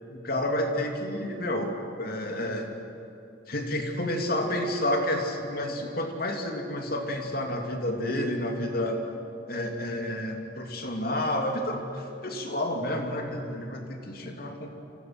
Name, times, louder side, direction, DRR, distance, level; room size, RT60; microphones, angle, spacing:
voice 1, 0.1-2.7 3.5-9.0 9.5-14.7, left 1 dB, 50° left, 3 dB, 3.0 m, -30 dB
28.0 x 27.0 x 6.2 m, 2.7 s
head